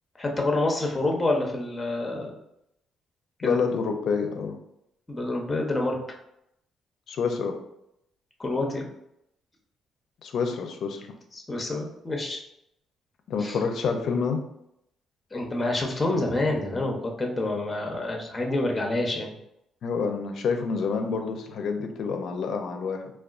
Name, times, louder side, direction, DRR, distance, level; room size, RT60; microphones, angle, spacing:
voice 1, 0.2-2.4 3.4-3.6 5.1-6.0 8.4-8.8 11.3-12.4 13.4-13.6 15.3-19.3, left 2 dB, 20° left, 1 dB, 0.6 m, -27 dB
voice 2, 3.4-4.6 7.1-7.6 10.2-11.1 13.3-14.4 19.8-23.1, left 5 dB, 65° left, 5 dB, 0.4 m, -28 dB
3.5 x 2.3 x 2.4 m, 0.80 s
cardioid pair, 90°, 0 cm